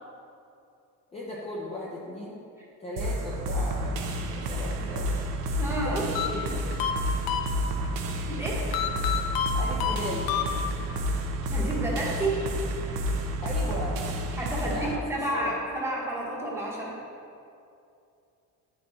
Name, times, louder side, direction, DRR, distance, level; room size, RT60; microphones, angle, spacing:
voice 1, 1.1-2.4 2.8-5.1 5.8-6.6 9.5-10.3 13.4-14.1 14.5-15.0 15.3-15.6, left 1 dB, 15° left, -6 dB, 0.6 m, -37 dB
sound 1, 3.0-15.0, equal, 85° right, 0.8 m, -30 dB
voice 2, 5.6-6.0 8.3-8.7 11.5-12.4 14.4-17.0, right 1 dB, 5° right, -5 dB, 1.1 m, -30 dB
sound 2, 6.1-8.0 8.7-11.0, left 9 dB, 85° left, 0.6 m, -30 dB
8.7 x 4.5 x 4.2 m, 2.6 s
cardioid pair, 180°, 35 cm